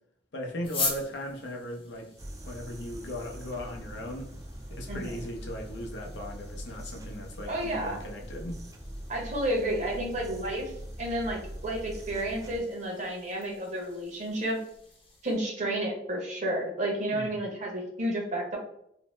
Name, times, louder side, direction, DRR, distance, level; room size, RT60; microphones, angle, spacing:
voice 1, 0.3-2.1 2.5-4.3 4.8-8.6 17.1-17.3, left 1 dB, 85° left, 1 dB, 0.6 m, -38 dB
sound 1, 0.6-15.4, left 3 dB, 30° left, 0.6 m, -43 dB
sound 2, 2.2-12.6, equal, 20° right, 0.3 m, -42 dB
voice 2, 4.9-5.2 7.5-8.0 9.1-10.7 11.0-14.6 15.2-18.6, right 1 dB, 45° right, -1 dB, 0.8 m, -31 dB
2.6 x 2.0 x 3.1 m, 0.72 s
head